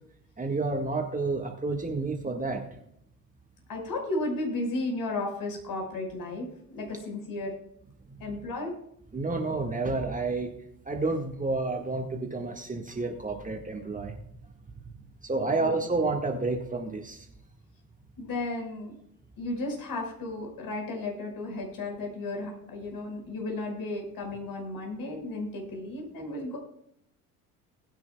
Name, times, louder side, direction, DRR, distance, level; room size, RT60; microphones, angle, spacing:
voice 1, 0.4-2.7 8.1-8.2 9.1-10.5 10.8-14.1 15.2-17.3, right 3 dB, 15° right, 3 dB, 1.7 m, -30 dB
voice 2, 3.7-7.5 8.2-8.8 15.4-15.8 18.2-19.0 19.4-26.6, left 2 dB, 45° left, 2 dB, 5.2 m, -34 dB
20.5 x 9.6 x 2.3 m, 0.72 s
hypercardioid pair, 65°, 47 cm